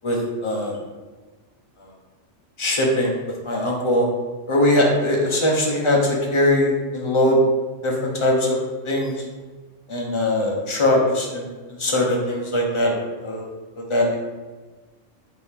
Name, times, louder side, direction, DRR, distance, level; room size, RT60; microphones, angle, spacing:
voice 1, 0.0-0.8 2.6-3.1 3.4-4.0 4.5-7.4 7.8-8.6 8.8-9.1 9.9-11.5 11.8-12.9 13.2-13.5 13.9-14.2, left 1 dB, 35° left, -1 dB, 0.5 m, -21 dB
4.5 x 2.7 x 3.4 m, 1.3 s
omnidirectional pair, 1.3 m